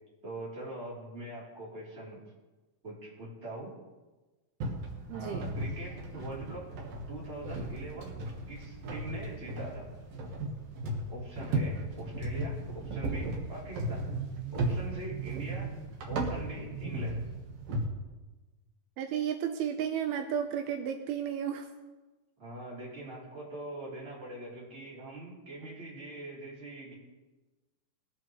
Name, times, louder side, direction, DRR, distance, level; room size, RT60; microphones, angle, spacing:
voice 1, 0.2-2.2 2.8-3.7 5.1-6.7 7.1-8.2 8.5-9.9 11.1-14.2 14.5-15.7 16.1-17.2 22.4-26.9, right 1 dB, 20° right, -6 dB, 3.0 m, -43 dB
sound 1, 4.6-17.8, right 2 dB, 60° right, 1.7 m, -36 dB
voice 2, 5.1-5.5 19.0-21.7, right 8 dB, 85° right, 6 dB, 2.5 m, -33 dB
21.0 x 8.2 x 3.1 m, 1.2 s
omnidirectional pair, 4.6 m